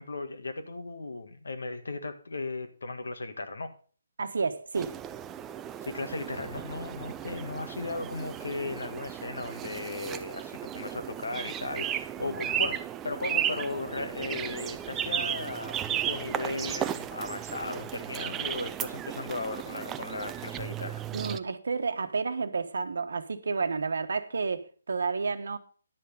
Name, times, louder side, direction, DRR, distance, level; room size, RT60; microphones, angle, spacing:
voice 1, 0.0-3.7 5.8-12.8 13.0-21.0, left 3 dB, 85° left, 1.7 m, -36 dB
voice 2, 4.2-5.0 12.2-12.4 21.1-25.6, right 4 dB, 75° right, 1.1 m, -31 dB
sound 1, 4.8-21.4, right 10 dB, 10° right, 0.4 m, -35 dB
10.5 x 7.1 x 5.2 m
hypercardioid pair, 160°, 0 cm